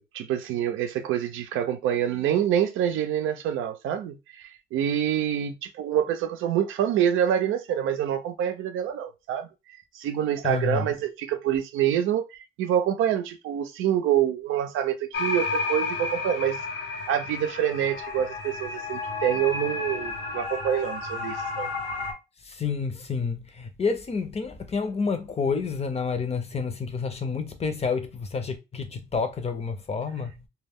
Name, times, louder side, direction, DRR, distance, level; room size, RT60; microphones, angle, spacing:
voice 1, 0.1-9.5 9.9-16.6 17.1-21.7, right 10 dB, 85° right, 0.5 m, -26 dB
voice 2, 10.4-11.0 22.4-30.4, left 5 dB, 30° left, 0.6 m, -29 dB
sound 1, 15.1-22.1, left 3 dB, 65° left, 0.9 m, -32 dB
2.2 x 2.0 x 3.5 m
cardioid pair, 90°, 20 cm